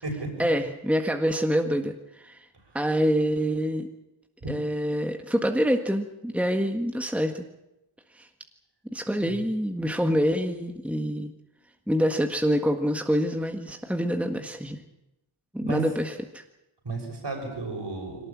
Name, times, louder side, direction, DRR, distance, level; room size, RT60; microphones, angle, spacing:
voice 1, 0.4-2.5 2.7-3.9 4.5-7.4 8.1-8.3 8.9-11.3 11.9-14.8 15.5-16.4, equal, 5° right, 5 dB, 1.7 m, -26 dB
voice 2, 16.8-18.3, right 3 dB, 55° right, 2 dB, 6.8 m, -34 dB
22.5 x 18.5 x 8.7 m, 0.92 s
wide cardioid pair, 70°, 49 cm